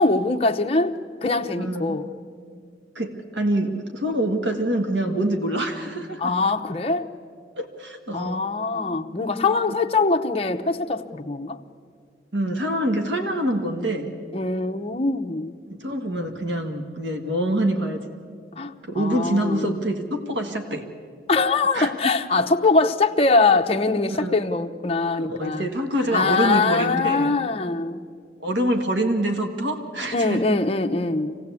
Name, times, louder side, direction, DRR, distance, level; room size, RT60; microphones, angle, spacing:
voice 1, 0.0-2.1 6.2-7.1 8.1-11.6 14.3-15.5 18.6-19.7 21.3-25.7 26.1-28.1 30.1-31.4, left 3 dB, 30° left, 0.8 m, -22 dB
voice 2, 1.6-2.0 3.0-6.3 7.6-8.4 12.3-14.1 15.7-18.0 18.8-20.9 21.7-21.9 24.1-24.4 25.2-27.3 28.4-30.5, right 1 dB, 80° right, 1.7 m, -25 dB
26.0 x 17.5 x 8.3 m
head